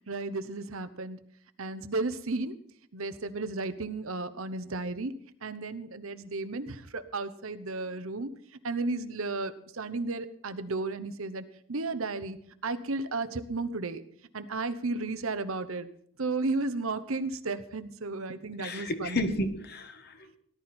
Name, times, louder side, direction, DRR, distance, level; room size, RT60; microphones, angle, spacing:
voice 1, 0.1-1.2 1.6-2.5 2.9-5.1 5.4-8.3 8.6-11.4 11.7-12.4 12.6-14.0 14.3-15.9 16.2-19.2, right 3 dB, 70° right, 12 dB, 0.9 m, -33 dB
voice 2, 18.6-20.4, left 1 dB, 45° left, 8 dB, 1.4 m, -32 dB
18.0 x 11.5 x 4.4 m, 0.65 s
head